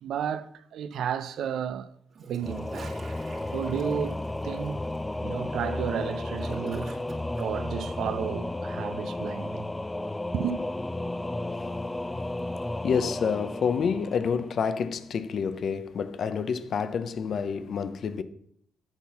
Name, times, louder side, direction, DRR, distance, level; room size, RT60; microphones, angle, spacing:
voice 1, 0.0-1.9 2.2-3.0 3.5-4.8 5.2-7.0 7.4-9.7 10.3-10.6, right 8 dB, 70° right, 0.6 m, -32 dB
Gurgling / Toilet flush, 2.1-7.5, right 3 dB, 45° right, 1.9 m, -49 dB
Singing / Musical instrument, 2.4-15.0, left 1 dB, 15° left, 0.3 m, -33 dB
voice 2, 12.8-18.2, left 6 dB, 55° left, 0.7 m, -28 dB
9.0 x 4.0 x 7.0 m
cardioid pair, 90°, 0 cm